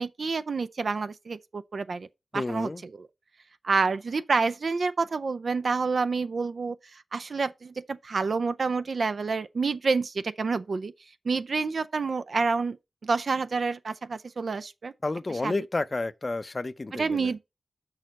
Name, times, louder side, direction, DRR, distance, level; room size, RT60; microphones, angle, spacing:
voice 1, 0.0-2.1 2.3-3.1 3.6-10.9 11.2-12.8 13.0-14.9 15.3-15.6 16.9-17.4, right 4 dB, 75° right, 0.4 m, -28 dB
voice 2, 2.3-2.8 15.0-17.3, left 2 dB, 45° left, 0.5 m, -31 dB
6.4 x 4.0 x 6.3 m
wide cardioid pair, 60°, 0 cm